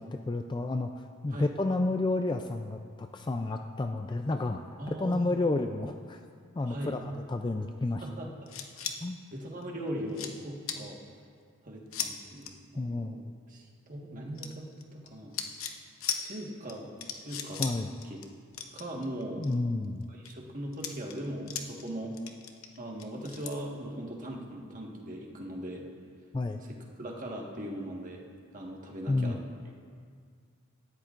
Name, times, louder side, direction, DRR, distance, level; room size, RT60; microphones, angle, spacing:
voice 1, 0.0-4.6 5.0-6.2 6.6-8.0 9.0-9.2 12.8-13.2 17.6-17.9 19.4-20.1 26.3-26.6 29.1-29.4, left 2 dB, 20° left, 6 dB, 0.3 m, -31 dB
voice 2, 4.8-5.4 6.7-7.0 8.0-8.5 9.3-11.0 11.6-13.2 13.5-15.3 16.2-16.9 17.1-17.6 18.0-18.2 18.7-19.5 20.1-22.2 22.8-25.9 26.6-28.2 28.5-29.4, right 1 dB, 35° right, -1 dB, 1.5 m, -39 dB
sound 1, 8.5-9.0 9.6-9.7 10.1-10.3 10.7-10.8 11.9-12.1 12.4-12.5 14.4-15.1 15.3-15.8 16.0-16.2 16.7-16.8 17.0-17.8 18.0-18.3 18.5-19.5 20.0-20.3 20.7-21.9 22.1-23.5, left 8 dB, 65° left, 0.8 m, -36 dB
18.5 x 13.0 x 2.5 m, 2.1 s
head